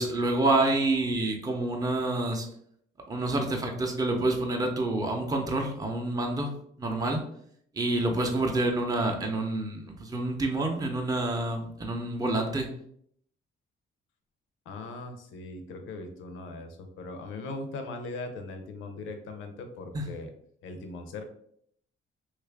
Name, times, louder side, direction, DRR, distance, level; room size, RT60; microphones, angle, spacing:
voice 1, 0.0-2.5 3.1-6.5 6.8-7.2 7.8-12.7 19.9-20.1, right 2 dB, 20° right, 2 dB, 0.6 m, -28 dB
voice 2, 14.7-20.3 20.6-21.2, left 2 dB, 85° left, 6 dB, 0.6 m, -39 dB
3.1 x 2.4 x 3.4 m, 0.68 s
cardioid pair, 90°, 20 cm